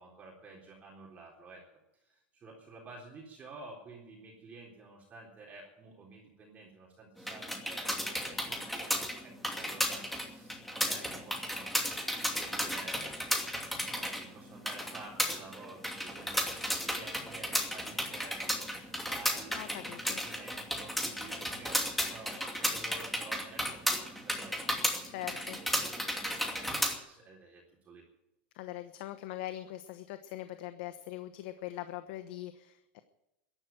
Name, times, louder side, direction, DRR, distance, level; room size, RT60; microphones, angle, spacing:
voice 1, 0.0-1.6 2.0-11.7 12.0-13.2 13.7-19.5 19.8-24.5 24.8-25.1 25.9-26.7 27.0-28.0, right 3 dB, 25° right, -2 dB, 3.8 m, -51 dB
sound 1, 7.2-27.0, equal, ahead, 2.6 m, -34 dB
voice 2, 19.5-20.2 25.0-25.6 28.5-33.0, left 14 dB, 70° left, 10 dB, 1.1 m, -42 dB
14.5 x 11.0 x 9.0 m, 0.92 s
supercardioid pair, 130°, 6 cm